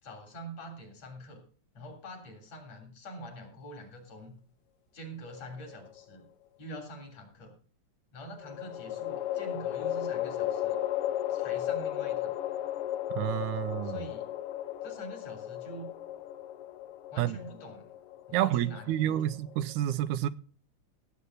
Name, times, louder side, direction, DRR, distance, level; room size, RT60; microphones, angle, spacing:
voice 1, 0.0-1.4 1.7-4.4 4.9-6.3 6.6-7.5 8.1-10.8 11.3-12.3 13.8-14.3 14.8-15.9 17.1-17.9 18.3-19.4, right 1 dB, 60° left, 4.4 m, -45 dB
sound 1, 5.3-6.2 8.4-19.7, left 12 dB, 90° left, 1.2 m, -35 dB
voice 2, 13.1-14.0 17.2-17.4 18.3-20.3, right 13 dB, 85° right, 2.1 m, -29 dB
16.5 x 8.3 x 4.0 m
omnidirectional pair, 3.4 m